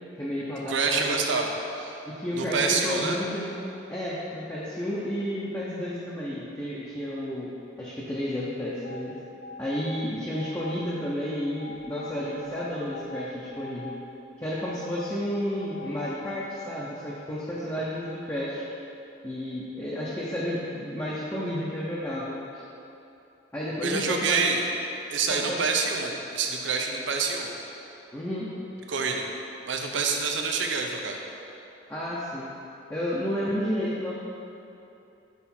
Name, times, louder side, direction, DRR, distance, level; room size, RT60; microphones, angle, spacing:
voice 1, 0.2-1.2 2.1-3.5 3.9-7.5 7.8-9.1 9.6-13.9 14.4-18.6 19.2-22.6 23.5-24.5 25.3-25.6 28.1-28.5 31.9-32.5 32.9-34.1, equal, 15° left, -7 dB, 0.6 m, -31 dB
voice 2, 0.7-2.0 2.3-3.2 23.8-24.6 25.1-27.5 28.9-29.3 29.7-31.2, right 4 dB, 80° right, 2 dB, 0.6 m, -27 dB
sound 1, 8.8-11.1 11.6-14.1 14.6-16.4, left 4 dB, 85° left, 0.6 m, -43 dB
5.9 x 4.8 x 4.3 m, 2.8 s
head